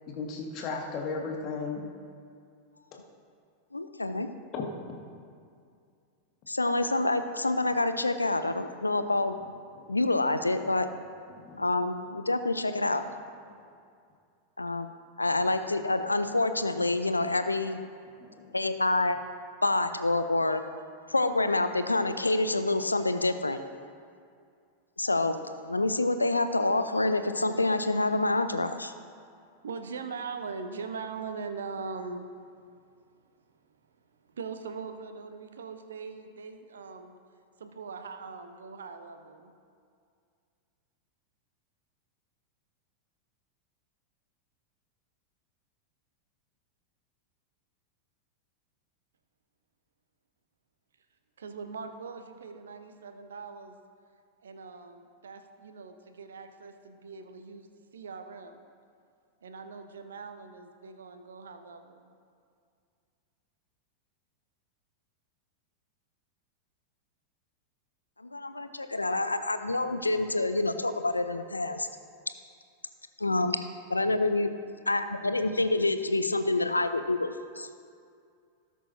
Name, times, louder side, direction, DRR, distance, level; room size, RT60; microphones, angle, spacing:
voice 1, 0.1-1.8 2.9-3.0 4.5-4.6 9.8-10.0 11.3-11.6 13.6-13.7 18.2-18.6, left 4 dB, 35° left, 0 dB, 1.6 m, -36 dB
voice 2, 3.7-4.3 6.5-9.3 9.9-10.9 11.6-13.0 14.6-14.9 15.2-17.8 18.5-19.2 19.6-20.6 21.1-23.6 25.0-25.4 25.6-28.9 68.2-71.9 73.2-73.6 73.9-74.5 74.9-77.3 77.6-77.7, left 2 dB, 80° left, 10 dB, 0.5 m, -27 dB
voice 3, 29.6-32.7 34.2-37.2 37.6-39.5 51.4-53.7 54.4-57.7 57.9-58.6 59.4-62.1, right 5 dB, 65° right, 7 dB, 0.8 m, -41 dB
17.5 x 6.2 x 2.7 m, 2.3 s
figure-of-eight pair, 90°, 0 cm